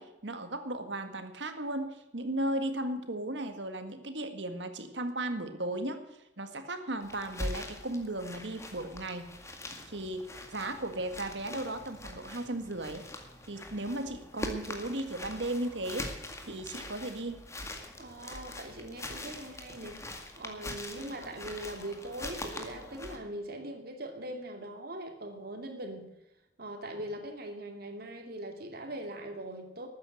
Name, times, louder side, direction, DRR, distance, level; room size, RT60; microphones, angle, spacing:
voice 1, 0.0-9.3 9.9-13.0 13.5-16.2 16.4-17.4, right 1 dB, 75° right, 8 dB, 1.8 m, -36 dB
sound 1, 7.0-23.2, left 1 dB, 15° left, 2.0 m, -43 dB
voice 2, 18.0-20.0 20.4-26.1 26.6-29.9, right 1 dB, 60° right, 5 dB, 2.6 m, -41 dB
13.5 x 9.4 x 7.7 m, 0.92 s
head